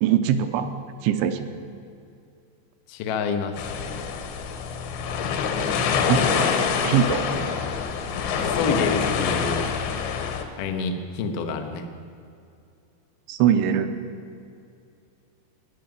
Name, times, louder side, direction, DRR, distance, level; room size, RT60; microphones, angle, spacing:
voice 1, 0.0-0.7 1.0-1.5 6.1-6.5 6.8-7.2 13.3-13.9, right 9 dB, 80° right, 8 dB, 3.0 m, -21 dB
voice 2, 2.9-4.2 8.4-9.7 10.6-11.9, left 4 dB, 90° left, 5 dB, 1.8 m, -28 dB
sound 1, 3.6-10.4, left 6 dB, 75° left, 3.1 m, -26 dB
14.0 x 10.5 x 8.9 m, 2.5 s
omnidirectional pair, 5.7 m